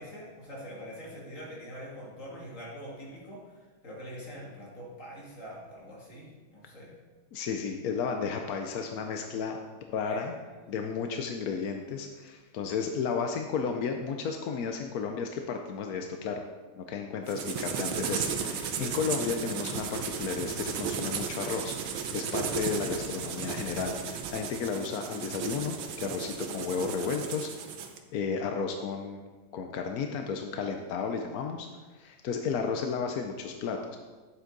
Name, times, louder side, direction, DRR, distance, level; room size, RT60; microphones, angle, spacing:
voice 1, 0.0-6.9 10.1-10.3, equal, 40° left, -5 dB, 2.8 m, -44 dB
voice 2, 7.3-9.6 9.9-10.3 10.7-16.4 16.8-27.5 28.1-29.2 29.5-31.7 31.9-34.0, left 5 dB, 65° left, 4 dB, 0.9 m, -33 dB
sound 1, 17.3-28.0, right 6 dB, 85° right, 1.7 m, -35 dB
11.0 x 8.0 x 3.9 m, 1.3 s
omnidirectional pair, 2.2 m